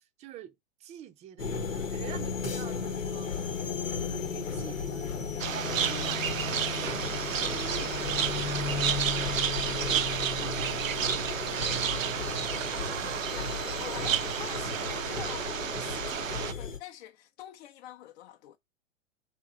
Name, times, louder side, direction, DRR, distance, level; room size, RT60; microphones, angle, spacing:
voice 1, 0.0-3.3 3.9-5.4 5.6-11.5, right 11 dB, 20° right, 0.4 m, -47 dB
sound 1, 1.4-16.8, left 5 dB, 90° left, 1.1 m, -34 dB
sound 2, 5.4-16.5, right 9 dB, 90° right, 0.6 m, -31 dB
voice 2, 12.3-18.6, left 12 dB, 55° left, 0.6 m, -46 dB
3.6 x 2.9 x 4.8 m
hypercardioid pair, 105°, 38 cm